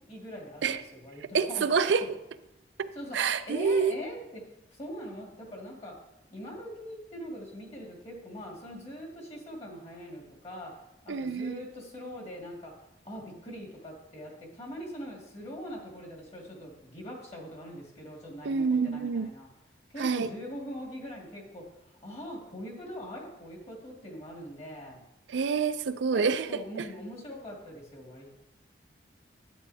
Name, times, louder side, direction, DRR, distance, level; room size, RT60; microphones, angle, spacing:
voice 1, 0.1-2.1 2.9-4.4 4.7-5.9 6.3-12.7 13.0-19.5 19.9-25.0 26.1-28.3, equal, 35° left, -1 dB, 2.1 m, -42 dB
voice 2, 1.3-2.0 2.8-3.9 11.1-11.6 18.4-19.3 20.0-20.3 25.3-26.5, right 5 dB, 75° right, 12 dB, 0.4 m, -27 dB
10.5 x 9.1 x 2.7 m, 0.89 s
head